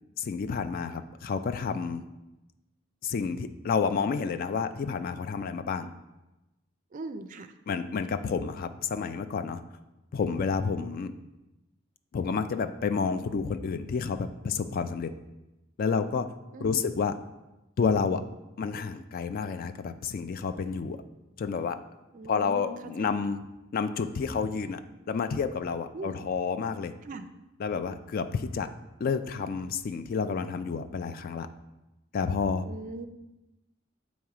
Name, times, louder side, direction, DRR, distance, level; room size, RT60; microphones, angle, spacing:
voice 1, 0.2-2.0 3.0-5.9 7.7-9.6 10.1-11.1 12.1-15.1 15.8-16.3 16.6-17.2 17.8-18.2 18.6-21.0 21.4-21.8 22.3-23.4 23.7-24.8 25.1-26.9 27.6-28.7 29.0-31.5 32.1-32.7, left 5 dB, 45° left, 11 dB, 0.3 m, -30 dB
voice 2, 6.9-7.5 16.5-16.9 22.1-23.2 25.9-26.3 27.1-27.3 32.7-33.1, right 3 dB, 40° right, 9 dB, 0.4 m, -40 dB
7.4 x 3.1 x 4.8 m, 0.99 s
head